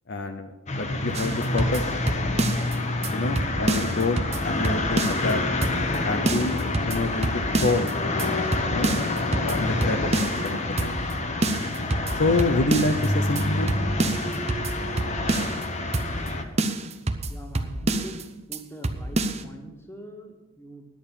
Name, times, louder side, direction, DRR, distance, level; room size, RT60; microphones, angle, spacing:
voice 1, 0.1-1.9 3.1-5.4 6.0-7.9 8.7-8.9 9.4-11.0 12.1-13.7, left 2 dB, 55° left, 6 dB, 0.7 m, -27 dB
sound 1, 0.7-16.4, left 2 dB, 35° left, 1.0 m, -27 dB
sound 2, 1.1-2.7 3.0-3.1 3.4-5.3 5.6-6.0 6.3-7.9 8.2-8.3 8.5-10.5 10.8-11.1 11.4-13.1 13.4-13.5 13.7-15.6 15.9-16.3 16.6-18.2 18.5-18.6 18.8-19.4, right 2 dB, 30° right, 0.7 m, -28 dB
voice 2, 17.3-20.9, equal, 10° left, 2 dB, 1.6 m, -43 dB
10.0 x 8.6 x 7.3 m, 1.1 s
head